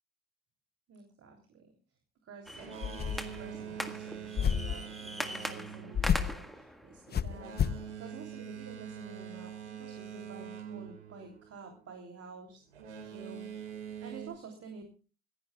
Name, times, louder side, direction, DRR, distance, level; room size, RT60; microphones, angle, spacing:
voice 1, 0.9-1.7 2.2-7.6 8.0-12.6 13.1-13.5 14.0-14.8, right 4 dB, 45° right, 3 dB, 3.2 m, -49 dB
sound 1, 2.5-7.9, equal, ahead, 1.8 m, -42 dB
Boat Water vehicle, 2.5-11.9 12.7-14.3, right 8 dB, 85° right, 2.9 m, -45 dB
sound 2, 2.8-3.4 4.4-4.8 5.9-6.4 7.1-7.9, left 7 dB, 30° left, 0.8 m, -30 dB
26.0 x 15.5 x 2.4 m, 0.36 s
hypercardioid pair, 65°, 34 cm